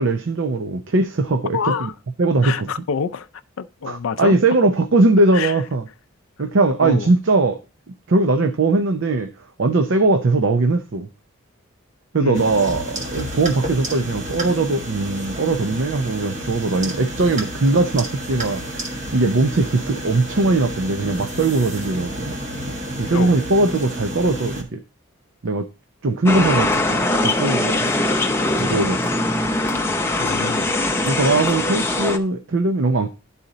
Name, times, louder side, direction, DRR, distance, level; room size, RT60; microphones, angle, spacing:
voice 1, 0.0-1.9 2.2-2.7 3.9-5.8 6.4-7.6 7.9-9.3 9.6-11.1 12.1-22.3 23.0-24.8 25.4-25.7 26.0-27.9 28.6-29.1 31.1-33.1, right 2 dB, 60° right, 0.5 m, -20 dB
voice 2, 1.5-1.9 2.4-3.3 3.6-4.4 5.3-5.6 6.8-7.1 12.2-12.6 23.1-23.4 30.2-30.7, left 6 dB, 70° left, 0.4 m, -26 dB
sound 1, 12.3-24.6, right 1 dB, 35° right, 1.5 m, -30 dB
sound 2, 26.3-32.2, left 2 dB, 10° left, 0.5 m, -21 dB
11.0 x 4.2 x 3.9 m
head